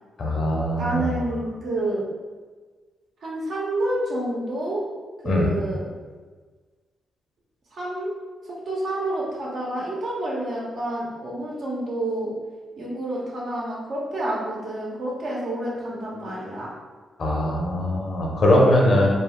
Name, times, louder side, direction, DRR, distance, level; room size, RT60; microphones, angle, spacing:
voice 1, 0.2-1.1 5.3-5.5 17.2-19.1, left 1 dB, 60° left, -1 dB, 0.7 m, -21 dB
voice 2, 0.8-2.0 3.2-4.8 5.2-5.9 7.7-8.1 8.7-12.3 12.8-16.7 19.0-19.1, right 1 dB, 65° right, -5 dB, 0.8 m, -28 dB
2.3 x 2.3 x 3.6 m, 1.4 s
supercardioid pair, 45°, 0 cm